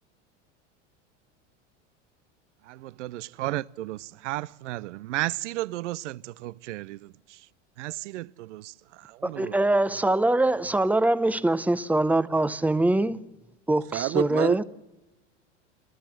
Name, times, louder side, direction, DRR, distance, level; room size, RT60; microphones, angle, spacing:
voice 1, 2.7-7.1 7.8-9.5, right 17 dB, 80° right, 0.6 m, -34 dB
voice 2, 9.2-13.2 13.7-14.6, right 2 dB, 5° right, 0.6 m, -23 dB
voice 3, 13.9-14.6, right 12 dB, 40° right, 0.7 m, -27 dB
28.5 x 13.5 x 7.5 m
hypercardioid pair, 100°, 36 cm